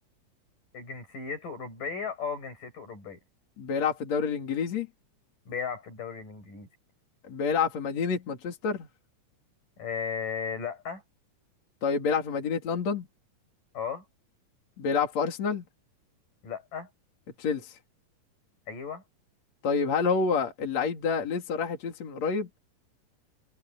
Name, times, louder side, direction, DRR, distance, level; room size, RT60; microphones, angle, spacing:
voice 1, 0.7-3.2 5.5-6.7 9.8-11.0 13.7-14.0 16.4-16.9 18.7-19.0, left 6 dB, 85° left, 8.1 m, -35 dB
voice 2, 3.6-4.9 7.3-8.9 11.8-13.0 14.8-15.6 17.4-17.8 19.6-22.5, left 5 dB, 55° left, 4.0 m, -28 dB
omnidirectional pair, 3.7 m